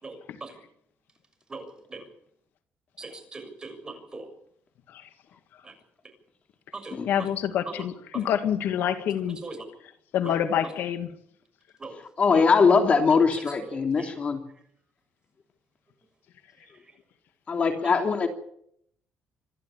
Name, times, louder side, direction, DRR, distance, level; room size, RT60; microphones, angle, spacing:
voice 1, 0.0-0.5 1.5-2.0 3.0-4.3 6.7-7.0 9.4-9.6 11.8-12.0 14.0-14.1, right 3 dB, 20° right, 5 dB, 6.7 m, -40 dB
voice 2, 7.1-9.4 10.1-11.1, left 9 dB, 75° left, 8 dB, 2.0 m, -27 dB
voice 3, 12.2-14.4 17.5-18.3, left 5 dB, 40° left, 4 dB, 3.0 m, -21 dB
26.5 x 12.0 x 8.7 m, 0.71 s
cardioid pair, 115°, 4 cm